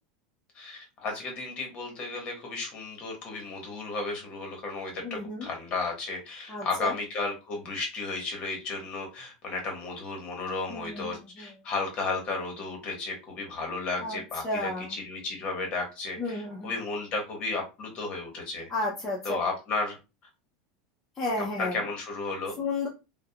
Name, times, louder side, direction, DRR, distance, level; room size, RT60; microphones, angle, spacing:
voice 1, 0.5-18.7 19.2-20.0 21.4-22.6, left 3 dB, 30° left, 1 dB, 0.9 m, -34 dB
voice 2, 5.0-5.5 6.5-6.9 10.7-11.1 11.4-11.5 14.0-14.2 14.4-14.9 16.2-16.7 18.7-19.4 21.2-21.8 22.6-22.9, left 2 dB, 10° left, -4 dB, 0.4 m, -32 dB
2.3 x 2.0 x 2.7 m, 0.28 s
supercardioid pair, 165°, 4 cm